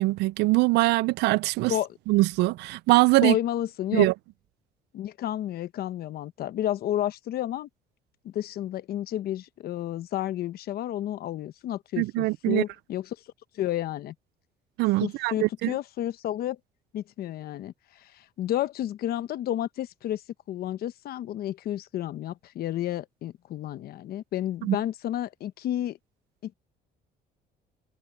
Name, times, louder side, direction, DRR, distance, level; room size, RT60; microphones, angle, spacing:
voice 1, 0.0-1.7 2.1-3.4 3.9-4.1 12.0-12.6 14.8-15.7 24.6-24.8, right 21 dB, 85° right, 0.4 m, -22 dB
voice 2, 3.2-4.1 4.9-7.7 8.2-13.1 13.5-14.1 15.0-16.6 16.9-20.2 20.5-26.0 26.4-26.5, left 12 dB, 65° left, 1.0 m, -31 dB
cardioid pair, 110°, 17 cm